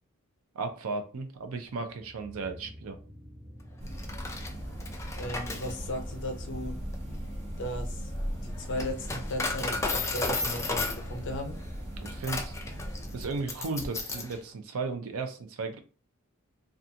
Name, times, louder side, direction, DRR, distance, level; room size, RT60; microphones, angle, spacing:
voice 1, 0.5-3.0 12.0-12.5 13.1-15.8, right 3 dB, 70° right, 7 dB, 0.5 m, -35 dB
sound 1, 1.4-9.6, equal, 50° right, 1.0 m, -53 dB
sound 2, 3.8-13.4, equal, 30° right, 0.6 m, -38 dB
Coin (dropping), 3.9-14.4, left 3 dB, 15° left, 0.3 m, -35 dB
voice 2, 5.1-6.8 7.6-8.1 8.4-11.6, left 1 dB, 55° left, 4 dB, 0.6 m, -36 dB
2.5 x 2.3 x 2.7 m, 0.37 s
head